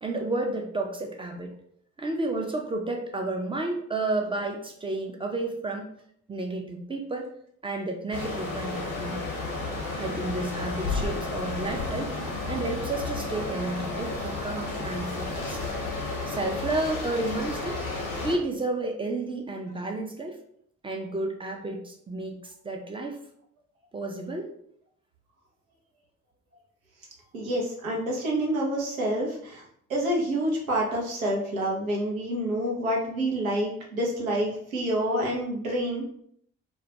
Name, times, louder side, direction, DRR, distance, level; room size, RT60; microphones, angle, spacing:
voice 1, 0.0-1.6 2.0-5.9 6.3-7.3 7.6-9.2 9.9-12.2 12.5-15.6 16.3-17.8 18.2-20.4 20.8-23.2 23.9-24.5, right 2 dB, 15° right, 2 dB, 0.4 m, -31 dB
sound 1, 8.1-18.4, left 3 dB, 75° left, 0.8 m, -32 dB
voice 2, 27.3-29.6 29.9-36.0, right 1 dB, 90° right, -2 dB, 0.5 m, -28 dB
2.2 x 2.1 x 2.7 m, 0.66 s
figure-of-eight pair, 40°, 40 cm